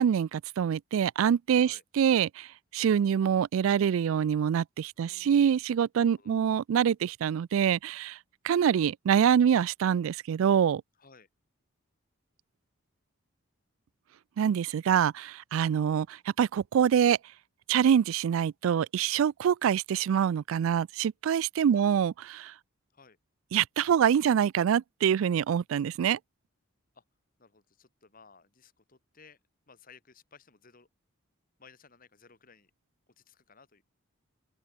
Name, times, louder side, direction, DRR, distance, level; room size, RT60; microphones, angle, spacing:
voice 1, 0.0-2.5 2.7-8.2 8.4-10.8 14.4-17.2 17.7-22.5 23.5-26.2, right 8 dB, 75° right, 0.3 m, -25 dB
voice 2, 5.0-5.4 6.0-6.3 11.0-11.3 21.7-21.9 22.9-23.2 26.9-27.0 27.4-29.4 29.7-30.9 31.6-32.7 33.2-33.8, left 5 dB, 40° left, 1.9 m, -57 dB
open air
head